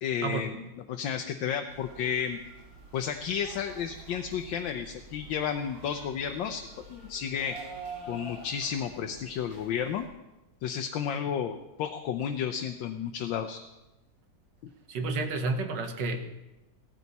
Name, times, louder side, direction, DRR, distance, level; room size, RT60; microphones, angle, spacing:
voice 1, 0.0-2.4 2.9-7.6 8.0-10.0 10.6-13.6, left 8 dB, 85° left, 5 dB, 1.5 m, -32 dB
sound 1, 1.7-10.1, right 3 dB, 50° right, 3.1 m, -47 dB
voice 2, 14.9-16.2, right 3 dB, 70° right, 6 dB, 1.8 m, -30 dB
16.5 x 14.0 x 4.2 m, 0.97 s
omnidirectional pair, 2.0 m